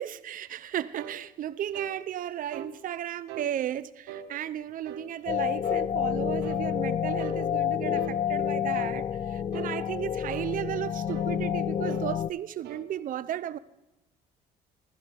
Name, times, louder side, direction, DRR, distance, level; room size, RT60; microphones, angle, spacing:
voice 1, 0.0-13.6, right 11 dB, 55° right, 0.7 m, -34 dB
sound 1, 1.0-1.2 1.7-2.0 2.5-2.8 3.3-3.5 4.1-4.3 4.9-5.1 5.6-5.9 6.4-6.6 7.2-7.4 8.0-8.2 8.7-9.0 9.5-9.8 10.3-10.5 11.1-11.3 11.9-12.1 12.6-12.9, right 7 dB, 85° right, 1.2 m, -41 dB
sound 2, 5.3-12.3, left 9 dB, 35° left, 0.4 m, -29 dB
15.5 x 13.0 x 3.5 m
cardioid pair, 110°, 17 cm